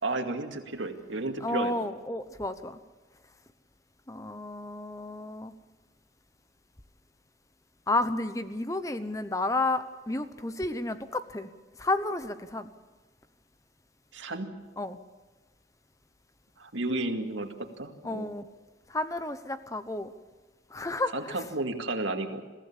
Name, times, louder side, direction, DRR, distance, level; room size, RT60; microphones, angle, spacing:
voice 1, 0.0-1.7 14.1-14.5 16.6-18.3 21.1-22.4, right 2 dB, 85° right, 5 dB, 2.2 m, -32 dB
voice 2, 1.4-2.8 4.1-5.5 7.9-11.5 11.8-12.7 14.8-15.0 18.0-18.4 18.9-20.1 20.7-21.4, left 2 dB, 15° left, 11 dB, 0.9 m, -31 dB
23.0 x 15.0 x 8.7 m, 1.3 s
head